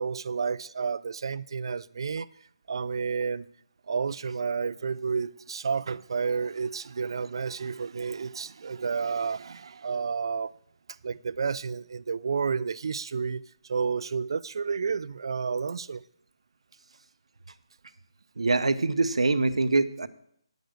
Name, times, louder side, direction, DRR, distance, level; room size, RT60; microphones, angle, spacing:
voice 1, 0.0-2.3 2.7-3.5 3.9-10.5 11.0-13.4 13.7-16.0, right 5 dB, 50° right, 0.3 m, -30 dB
voice 2, 18.4-20.1, right 3 dB, 85° right, 0.7 m, -24 dB
10.5 x 6.6 x 6.2 m
hypercardioid pair, 170°, 3 cm